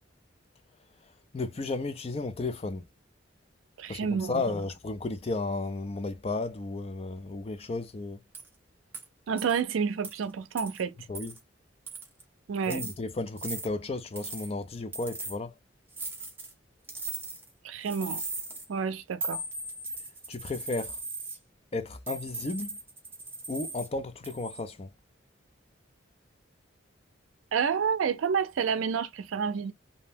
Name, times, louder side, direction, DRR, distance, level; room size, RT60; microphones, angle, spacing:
voice 1, 1.3-2.9 3.9-4.0 4.3-8.2 11.1-11.3 12.7-15.5 20.3-21.0 21.7-22.8 23.5-24.9, left 3 dB, 30° left, 0.4 m, -33 dB
voice 2, 3.8-4.4 9.3-11.1 12.5-12.8 17.6-18.2 18.7-19.4 27.5-29.7, right 6 dB, 90° right, 0.4 m, -29 dB
sound 1, 8.3-8.5 8.9-9.0 9.4-9.6 10.0-10.1 10.6-10.8 11.1-11.4 11.9-12.2 12.6-12.9 13.4-13.7 14.2-14.5 14.9-15.4 15.9-16.5 16.9-17.5 17.8-18.6 19.2-21.4 22.1-23.9 24.2-24.6, right 2 dB, 10° right, 0.6 m, -38 dB
2.7 x 2.0 x 3.2 m
head